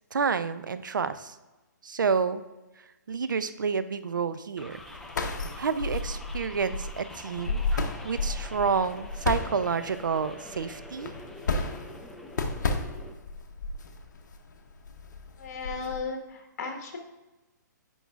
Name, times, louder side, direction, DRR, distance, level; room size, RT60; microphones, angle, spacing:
voice 1, 0.1-1.3 1.8-2.4 3.1-4.8 5.6-11.1, right 5 dB, 90° right, 13 dB, 0.5 m, -29 dB
sound 1, 4.6-13.1, left 1 dB, ahead, 0.4 m, -46 dB
sound 2, 4.7-16.0, left 3 dB, 70° left, 0.8 m, -33 dB
voice 2, 15.4-17.0, left 4 dB, 55° left, 3 dB, 1.4 m, -35 dB
9.2 x 5.4 x 2.4 m, 1.1 s
hypercardioid pair, 150°, 10 cm